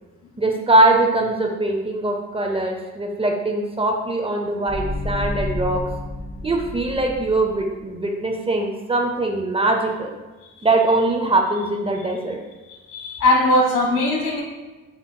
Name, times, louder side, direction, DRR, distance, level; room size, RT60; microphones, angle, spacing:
voice 1, 0.4-5.8 6.4-10.1 10.6-12.4, right 2 dB, 20° right, 2 dB, 0.5 m, -21 dB
sound 1, 4.7-7.8, left 2 dB, 25° left, 0.9 m, -30 dB
voice 2, 12.9-14.4, left 1 dB, 75° left, -1 dB, 1.4 m, -19 dB
7.2 x 2.8 x 2.2 m, 1.2 s
cardioid pair, 90°, 30 cm